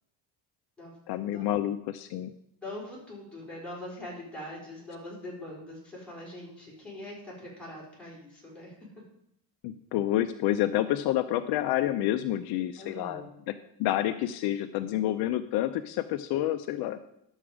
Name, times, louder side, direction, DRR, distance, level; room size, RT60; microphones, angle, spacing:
voice 1, 1.1-2.3 9.6-13.5 13.8-17.0, left 13 dB, 65° left, 9 dB, 0.6 m, -29 dB
voice 2, 2.6-8.7 12.8-13.3, left 1 dB, 5° left, -6 dB, 4.0 m, -42 dB
11.0 x 7.2 x 4.9 m, 0.76 s
cardioid pair, 175°, 41 cm